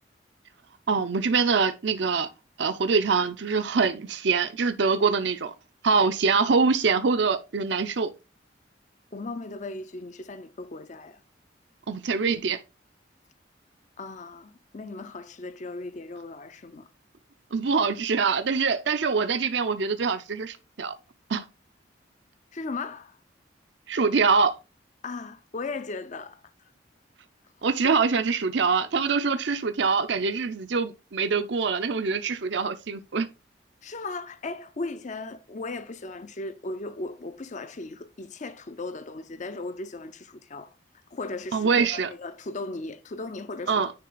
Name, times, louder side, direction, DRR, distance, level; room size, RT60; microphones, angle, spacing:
voice 1, 0.9-2.3 2.6-5.5 5.8-8.1 11.9-12.6 17.5-20.9 21.3-21.4 23.9-24.5 27.6-33.3 41.5-42.1 43.7-43.9, right 5 dB, 65° right, 0.6 m, -24 dB
voice 2, 9.1-11.2 14.0-16.9 22.5-23.2 25.0-26.4 27.9-28.0 33.8-40.7 41.1-43.8, left 3 dB, 40° left, 0.6 m, -37 dB
9.7 x 3.3 x 3.8 m
head